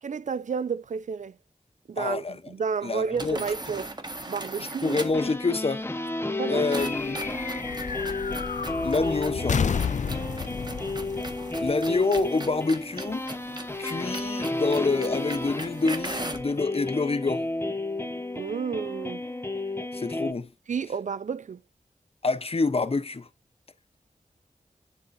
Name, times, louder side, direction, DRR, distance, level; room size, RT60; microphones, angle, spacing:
voice 1, 0.0-1.4 1.9-3.9 4.3-5.0 6.4-6.6 18.3-19.2 20.7-21.6, right 6 dB, 65° right, 0.4 m, -31 dB
voice 2, 2.0-2.3 2.8-3.4 4.8-5.8 6.5-7.2 8.8-9.7 11.6-13.3 13.8-17.5 19.9-20.5 22.2-23.3, left 3 dB, 45° left, 0.8 m, -27 dB
sound 1, 3.1-5.3 6.7-16.5, right 2 dB, 30° right, 1.4 m, -39 dB
sound 2, 4.8-20.3, left 2 dB, 20° left, 0.9 m, -32 dB
sound 3, 6.8-12.5, left 6 dB, 65° left, 0.4 m, -32 dB
10.5 x 5.1 x 2.6 m
wide cardioid pair, 85°, 14 cm